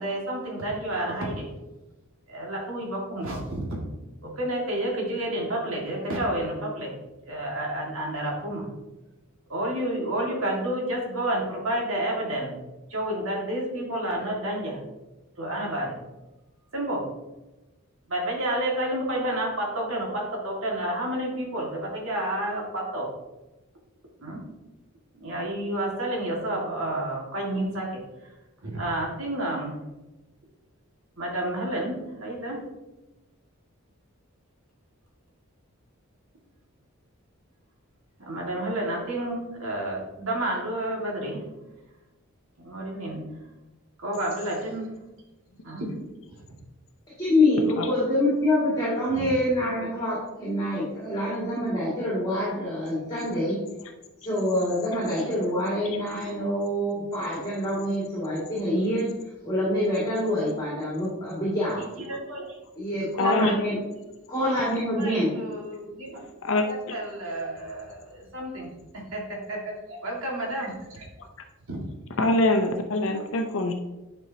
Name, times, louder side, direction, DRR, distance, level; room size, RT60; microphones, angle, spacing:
voice 1, 0.0-1.5 2.3-3.6 4.2-6.9 7.3-8.6 9.5-12.6 12.9-14.8 15.4-16.0 16.7-17.0 18.1-23.1 24.2-24.4 25.1-27.9 28.6-29.7 31.2-32.6 38.2-41.4 42.6-43.2 44.0-44.9 45.6-45.9 46.3-46.4 49.1-49.3 61.8-62.5 63.2-64.0 65.0-66.2 66.6-71.0 71.7-71.8, right 1 dB, 70° right, -2 dB, 2.0 m, -30 dB
voice 2, 47.2-53.6 54.2-59.1 59.4-61.8 62.8-63.8 64.3-65.3, left 1 dB, 20° left, -8 dB, 2.2 m, -26 dB
voice 3, 63.2-63.5 66.4-66.9 72.2-73.7, left 2 dB, 65° left, 5 dB, 0.6 m, -24 dB
10.0 x 5.3 x 2.8 m, 1.0 s
head